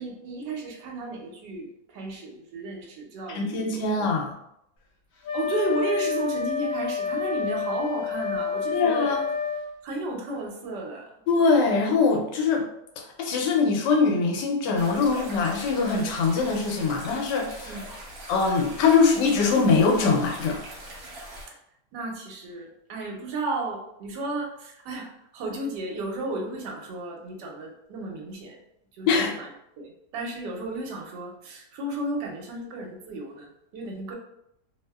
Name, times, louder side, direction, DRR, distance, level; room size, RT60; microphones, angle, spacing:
voice 1, 0.0-4.1 5.3-9.1 9.8-11.1 17.7-17.9 21.5-21.6 21.9-28.6 28.9-29.5 29.8-34.2, right 2 dB, 85° right, 1 dB, 1.2 m, -33 dB
voice 2, 3.3-4.3 8.7-9.2 11.3-12.6 13.2-17.7 18.3-20.6 29.1-29.3, left 4 dB, 85° left, 1 dB, 1.2 m, -22 dB
Wind instrument woodwind instrument, 5.2-9.7, left 6 dB, 70° left, 1.1 m, -29 dB
sound 1, 14.7-21.5, right 1 dB, 60° right, 1.2 m, -41 dB
2.9 x 2.0 x 2.2 m, 0.78 s
omnidirectional pair, 1.8 m